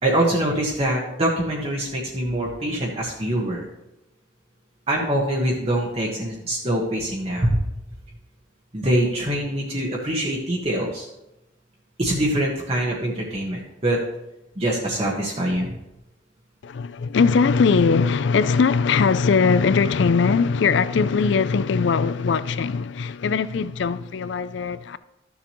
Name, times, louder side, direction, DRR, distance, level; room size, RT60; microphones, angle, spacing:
voice 1, 0.0-3.6 4.9-7.6 8.7-11.0 12.0-14.0 14.6-15.8, right 1 dB, 30° right, 1.2 m, -24 dB
voice 2, 16.6-25.0, left 5 dB, 65° left, 0.4 m, -20 dB
13.5 x 7.2 x 3.1 m
head